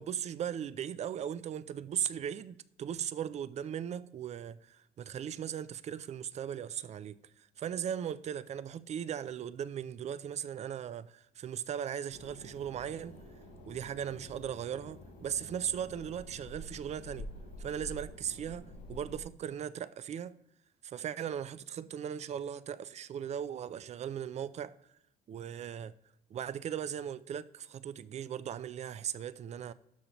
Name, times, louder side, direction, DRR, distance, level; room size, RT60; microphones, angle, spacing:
voice 1, 0.0-13.2 13.7-17.3 17.6-20.3 20.8-24.7 25.3-25.9 26.3-29.7, right 9 dB, 40° right, 0.4 m, -38 dB
sound 1, 12.1-19.2, left 1 dB, 90° left, 3.3 m, -48 dB
12.5 x 5.0 x 3.0 m
cardioid pair, 110°, 17 cm